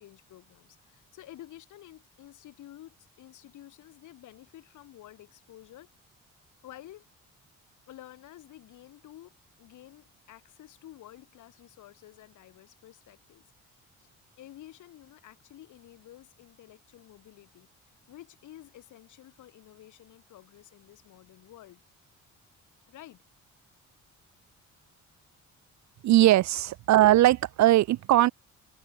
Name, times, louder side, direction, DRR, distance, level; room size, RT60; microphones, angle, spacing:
voice 1, 0.0-5.9 6.6-7.1 7.9-14.1 14.4-21.8 22.9-23.2, left 13 dB, 80° left, 2.3 m, -51 dB
voice 2, 26.0-28.3, right 14 dB, 65° right, 0.6 m, -20 dB
cardioid pair, 90°, 30 cm